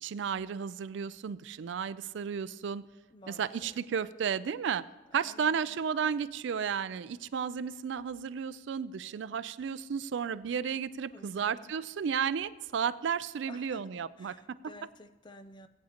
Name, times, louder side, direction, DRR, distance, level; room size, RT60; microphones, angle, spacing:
voice 1, 0.0-2.8 3.3-4.8 5.1-14.4 14.6-14.7, right 7 dB, 70° right, 16 dB, 0.4 m, -33 dB
voice 2, 3.1-3.8 5.2-5.8 11.1-11.7 13.5-13.8 14.2-15.7, left 2 dB, 25° left, 11 dB, 0.4 m, -52 dB
17.0 x 8.7 x 2.9 m, 1.1 s
head